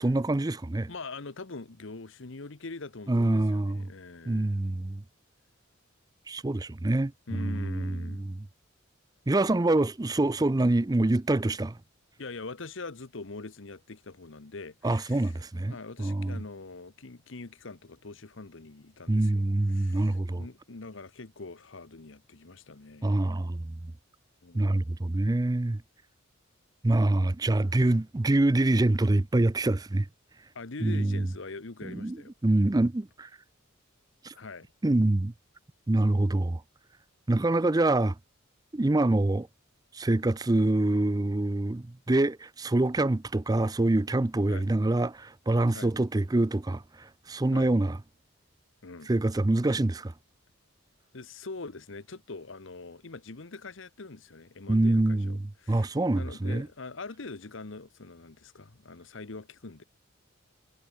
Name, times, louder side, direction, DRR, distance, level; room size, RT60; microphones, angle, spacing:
voice 1, 0.0-0.9 3.1-3.9 4.3-5.0 6.3-8.3 9.3-11.8 14.8-16.4 19.1-20.4 23.0-23.8 24.5-25.8 26.8-30.1 30.8-31.2 31.8-32.2 32.4-33.3 34.2-34.3 34.8-35.3 35.9-36.6 37.3-38.2 38.7-39.5 39.9-48.0 49.1-50.1 54.7-56.7, right 2 dB, 20° right, 0.5 m, -25 dB
voice 2, 0.9-4.7 7.3-8.3 12.2-15.4 15.7-23.2 24.4-24.8 30.5-32.3 34.3-34.7 44.5-44.7 45.7-45.9 47.5-47.7 48.8-49.1 51.1-59.8, left 3 dB, 65° left, 1.1 m, -43 dB
head